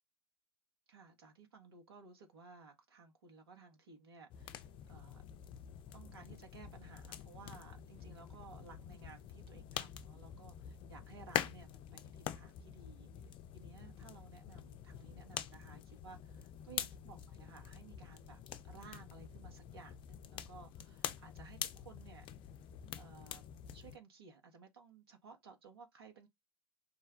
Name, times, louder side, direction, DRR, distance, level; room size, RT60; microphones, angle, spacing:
voice 1, 0.9-5.2 5.9-13.1 13.5-22.3 23.0-23.4 23.7-26.3, right 5 dB, 75° right, 1.4 m, -57 dB
sound 1, 4.3-24.0, left 10 dB, 40° left, 0.6 m, -46 dB
5.4 x 2.2 x 3.7 m
figure-of-eight pair, 80°, 13 cm